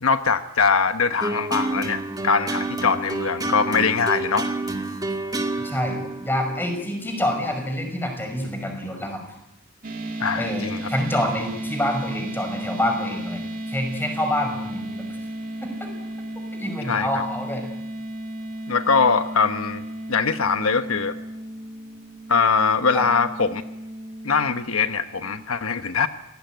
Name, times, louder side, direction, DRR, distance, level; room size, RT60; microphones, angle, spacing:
voice 1, 0.0-4.5 10.2-10.9 16.8-17.2 18.7-19.8 20.1-21.2 22.3-23.6 24.2-26.1, left 5 dB, 80° left, 9 dB, 1.1 m, -22 dB
sound 1, 1.2-7.7, right 2 dB, 20° right, 2.2 m, -29 dB
voice 2, 5.6-9.2 10.4-15.2 15.6-15.9 16.5-17.6 22.9-23.1, left 1 dB, 10° left, 5 dB, 5.5 m, -27 dB
sound 2, 9.8-25.4, right 1 dB, 40° right, 2.5 m, -34 dB
27.5 x 19.0 x 9.2 m, 0.90 s
head